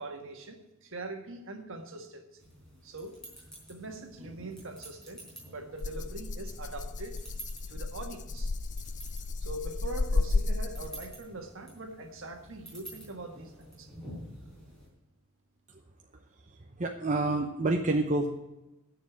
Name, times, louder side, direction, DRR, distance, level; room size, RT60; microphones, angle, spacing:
voice 1, 0.0-2.4 2.8-3.2 3.7-7.2 7.7-8.5 9.4-13.5 13.8-13.9, right 2 dB, 60° right, 4 dB, 1.7 m, -42 dB
sound 1, 2.4-14.9, right 1 dB, 5° left, 4.2 m, -50 dB
Rattle (instrument), 5.8-11.1, left 3 dB, 35° left, 0.5 m, -32 dB
voice 2, 16.5-18.3, right 2 dB, 35° right, 2 dB, 0.8 m, -28 dB
10.5 x 6.8 x 8.8 m, 0.96 s
head